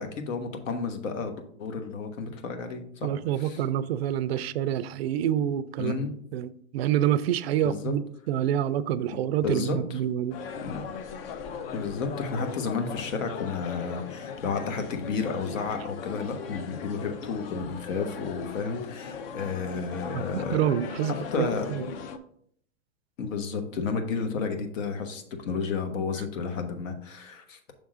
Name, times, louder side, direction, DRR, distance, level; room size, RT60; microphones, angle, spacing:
voice 1, 0.0-3.1 3.4-3.6 5.8-6.2 7.6-7.9 9.1-10.0 10.6-10.8 11.7-20.6 21.3-21.7 23.2-27.7, left 5 dB, 70° left, 1.2 m, -32 dB
voice 2, 3.0-6.0 6.3-10.4 20.1-21.8, right 10 dB, 50° right, 0.4 m, -27 dB
sound 1, 10.3-22.2, left 6 dB, 45° left, 0.6 m, -38 dB
6.3 x 3.6 x 4.8 m
hypercardioid pair, 140°, 40 cm